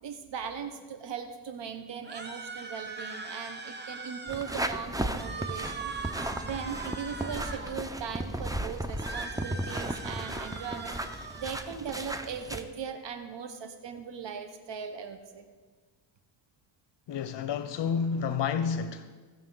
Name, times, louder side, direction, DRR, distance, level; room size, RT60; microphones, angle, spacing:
voice 1, 0.0-15.4, right 7 dB, 70° right, 8 dB, 0.9 m, -39 dB
sound 1, 2.0-4.6 5.0-7.8 8.9-11.7, right 4 dB, 25° right, 1.0 m, -41 dB
sound 2, 4.3-12.6, right 1 dB, 10° right, 0.7 m, -35 dB
voice 2, 17.1-19.1, left 6 dB, 70° left, 11 dB, 0.6 m, -30 dB
17.5 x 6.6 x 3.8 m, 1.5 s
cardioid pair, 75°, 44 cm